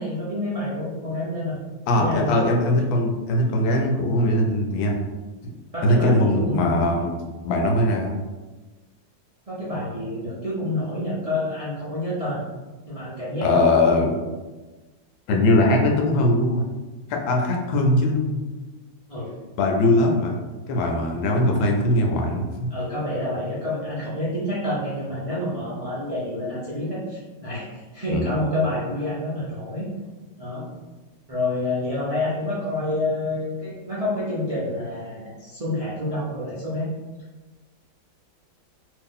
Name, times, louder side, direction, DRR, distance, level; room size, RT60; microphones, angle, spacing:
voice 1, 0.0-1.6 2.0-2.3 5.7-7.0 9.5-12.4 12.9-13.6 13.9-14.0 19.1-19.3 22.7-29.9 30.4-30.7 31.3-36.9, left 1 dB, 60° right, -9 dB, 0.3 m, -28 dB
voice 2, 1.9-5.1 5.8-7.2 7.4-8.2 13.4-14.2 15.3-16.7 17.1-18.4 19.6-20.4 20.7-22.7 28.1-28.3, left 1 dB, 80° left, 2 dB, 1.3 m, -21 dB
3.1 x 2.8 x 3.6 m, 1.2 s
omnidirectional pair, 2.1 m